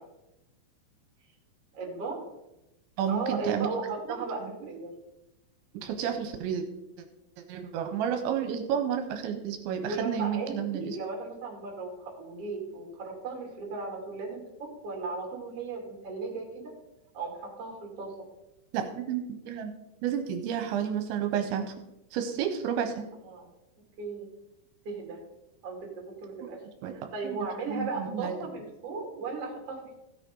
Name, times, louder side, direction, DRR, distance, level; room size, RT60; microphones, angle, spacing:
voice 1, 1.7-2.2 3.1-4.9 9.8-16.7 17.1-18.1 23.2-23.5 24.0-24.3 24.8-25.2 25.6-25.8 26.2-26.6 26.9-29.9, right 3 dB, 40° right, -2 dB, 2.9 m, -36 dB
voice 2, 3.0-3.7 4.1-4.2 5.8-6.6 7.5-11.0 18.7-19.7 20.0-21.6 22.1-23.1 26.8-26.9 27.2-27.4 27.7-28.3, right 8 dB, 85° right, 6 dB, 3.1 m, -31 dB
16.0 x 6.5 x 3.8 m, 0.93 s
omnidirectional pair, 5.3 m